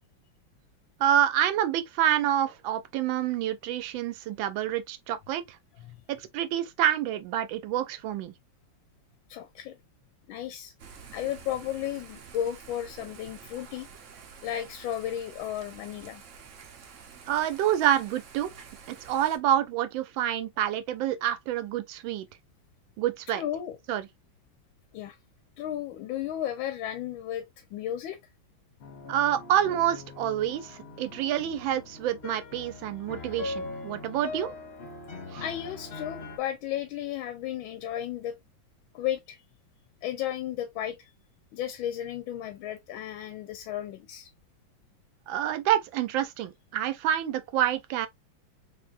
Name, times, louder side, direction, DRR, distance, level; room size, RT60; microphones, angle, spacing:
voice 1, 1.0-5.6 6.1-8.3 17.3-18.5 18.9-22.3 23.0-23.4 23.9-24.1 29.1-34.5 35.3-35.4 45.3-48.1, right 11 dB, 80° right, 1.3 m, -27 dB
voice 2, 9.3-9.8 10.3-10.7 11.1-13.9 14.4-16.2 23.3-23.8 24.9-25.2 25.6-28.2 35.4-38.4 38.9-39.4 40.0-41.1 41.5-44.3, left 11 dB, 90° left, 1.4 m, -34 dB
Thunder / Rain, 10.8-19.4, right 6 dB, 65° right, 0.7 m, -49 dB
sound 1, 28.8-36.4, left 3 dB, 55° left, 0.7 m, -41 dB
3.6 x 3.4 x 2.4 m
omnidirectional pair, 2.2 m